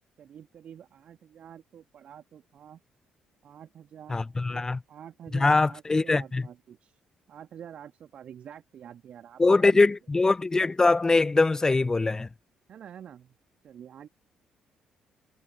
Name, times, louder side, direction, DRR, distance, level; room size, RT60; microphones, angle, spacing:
voice 1, 0.2-2.8 3.4-6.9 7.3-9.9 12.7-13.4 13.6-14.1, right 9 dB, 50° right, 2.7 m, -47 dB
voice 2, 4.1-4.8 5.3-6.4 9.4-12.3, left 3 dB, 20° left, 0.6 m, -22 dB
figure-of-eight pair, 40°, 3 cm